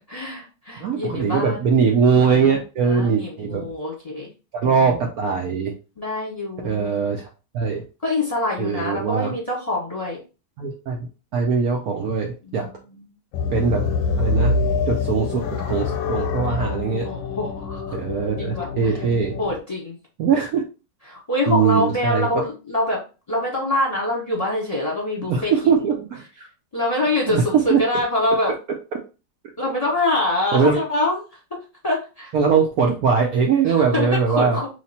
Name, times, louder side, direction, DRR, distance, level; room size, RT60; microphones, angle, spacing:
voice 1, 0.1-1.6 2.8-4.3 6.0-7.1 8.0-10.2 12.4-13.0 17.0-18.0 18.4-19.0 19.4-20.0 21.1-23.0 23.3-25.5 26.7-28.5 29.6-31.2 31.8-32.3 33.6-34.7, left 2 dB, 25° left, -4 dB, 1.0 m, -25 dB
voice 2, 0.8-3.6 4.5-5.7 6.6-7.8 8.6-9.3 10.6-12.7 13.5-13.9 14.2-14.6 14.9-17.1 17.9-19.4 20.2-20.6 21.5-22.3 25.3-26.5 27.3-27.8 30.5-30.8 32.3-34.6, right 6 dB, 65° right, 1 dB, 0.9 m, -21 dB
sound 1, 13.3-19.6, left 4 dB, 90° left, 1.3 m, -25 dB
3.2 x 2.8 x 4.1 m, 0.32 s
omnidirectional pair, 2.0 m